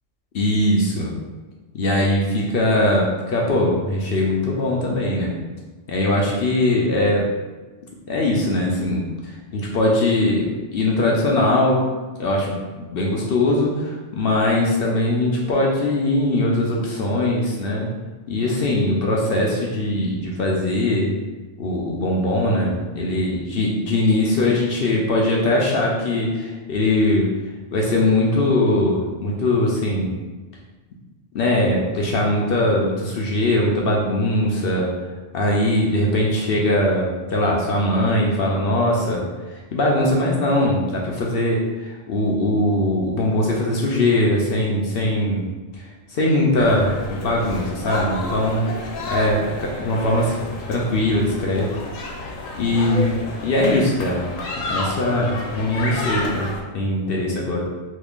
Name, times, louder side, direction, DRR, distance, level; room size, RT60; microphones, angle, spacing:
voice 1, 0.3-1.1 1.7-5.3 5.9-7.3 8.1-11.9 12.2-17.9 18.3-21.1 21.6-27.3 27.7-30.1 31.3-35.1 35.3-45.5 45.7-48.8 49.1-51.7 52.6-53.1 53.4-54.3 54.7-56.5 56.7-57.6, left 1 dB, 60° left, -2 dB, 0.6 m, -21 dB
sound 1, 46.5-56.6, left 2 dB, 80° left, 1.0 m, -31 dB
3.1 x 2.4 x 3.5 m, 1.2 s
omnidirectional pair, 1.3 m